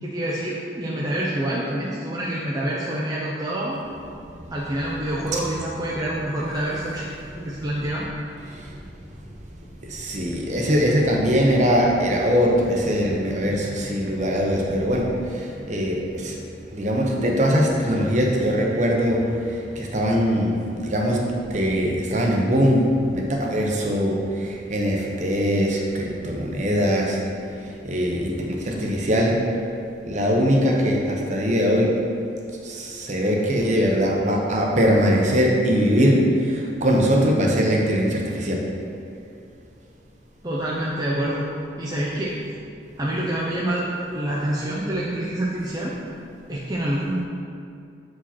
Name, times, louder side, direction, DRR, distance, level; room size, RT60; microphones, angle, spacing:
voice 1, 0.0-3.8 4.5-7.1 7.3-8.1 40.4-41.5 41.8-42.4 43.0-43.9 44.1-45.9 46.5-47.2, right 1 dB, 20° right, -6 dB, 0.6 m, -27 dB
voice 2, 9.9-16.3 16.7-19.2 19.8-20.6 20.8-22.9 23.1-27.2 27.8-28.3 28.6-29.4 30.1-32.0 32.6-36.2 36.5-38.6, equal, 40° right, -1 dB, 0.9 m, -21 dB
7.6 x 4.9 x 4.3 m, 2.5 s
head